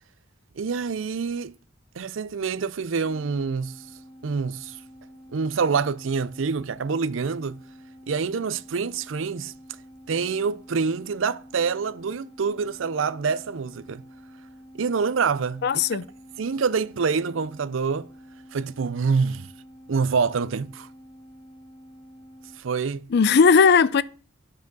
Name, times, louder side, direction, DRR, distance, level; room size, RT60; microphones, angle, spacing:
voice 1, 0.6-1.5 2.0-3.8 4.2-4.8 5.3-7.6 8.1-9.5 10.1-14.0 14.7-15.6 16.4-18.1 18.5-19.5 19.9-20.9 22.6-23.1, right 5 dB, 80° right, 0.5 m, -26 dB
sound 1, 3.0-22.6, equal, 25° left, 1.7 m, -48 dB
voice 2, 15.6-16.1 23.1-24.0, left 5 dB, 55° left, 0.4 m, -17 dB
10.5 x 4.8 x 6.1 m
head